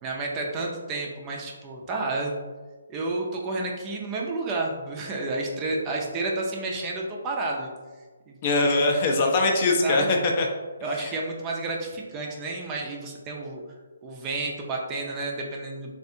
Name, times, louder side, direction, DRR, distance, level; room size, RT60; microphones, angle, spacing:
voice 1, 0.0-2.4 2.9-7.7 8.3-8.4 8.8-9.3 9.8-10.1 10.8-13.6 14.0-15.9, right 2 dB, 20° right, -1 dB, 0.4 m, -31 dB
voice 2, 8.4-10.5 10.9-11.1, left 2 dB, 35° left, 2 dB, 0.5 m, -22 dB
3.3 x 2.4 x 2.6 m, 1.4 s
figure-of-eight pair, 145°, 0 cm